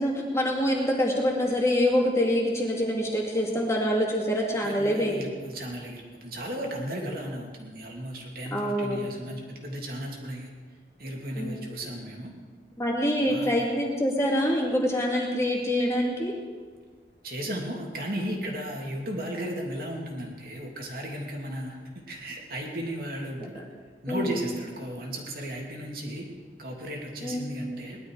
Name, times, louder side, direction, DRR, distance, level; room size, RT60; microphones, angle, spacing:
voice 1, 0.0-5.3 8.5-9.0 11.4-11.6 12.8-16.3 24.1-24.3 27.2-27.5, equal, 15° left, -2 dB, 2.4 m, -25 dB
voice 2, 4.6-10.5 11.0-12.3 13.2-13.5 17.2-23.6 24.0-26.3 26.6-28.0, equal, 55° right, 0 dB, 2.9 m, -35 dB
19.5 x 12.0 x 4.9 m, 1.5 s
head